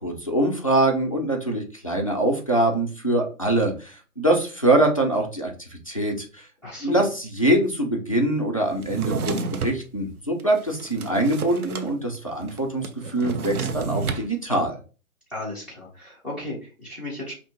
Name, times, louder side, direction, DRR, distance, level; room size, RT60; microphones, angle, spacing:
voice 1, 0.0-6.4 6.8-9.3 9.6-14.8, right 1 dB, 25° left, 0 dB, 0.4 m, -23 dB
voice 2, 6.6-7.0 15.3-17.3, left 1 dB, ahead, -9 dB, 0.9 m, -34 dB
Drawer open or close, 8.8-9.8 10.4-11.9 12.1-12.2 12.5-14.3, right 4 dB, 90° right, 0.7 m, -30 dB
5.7 x 2.1 x 2.8 m, 0.36 s
hypercardioid pair, 150°, 43 cm